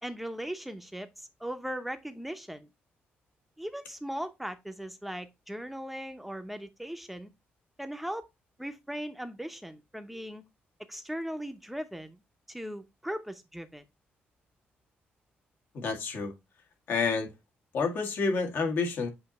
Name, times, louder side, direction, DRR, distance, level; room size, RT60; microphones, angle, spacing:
voice 1, 0.0-2.7 3.6-7.3 7.8-8.2 8.6-10.4 10.9-12.2 12.5-13.8, equal, 5° right, 0.8 m, -38 dB
voice 2, 15.7-16.3 16.9-17.3 17.7-19.1, left 4 dB, 60° left, 1.9 m, -29 dB
8.0 x 2.9 x 4.1 m
cardioid pair, 125°, 4 cm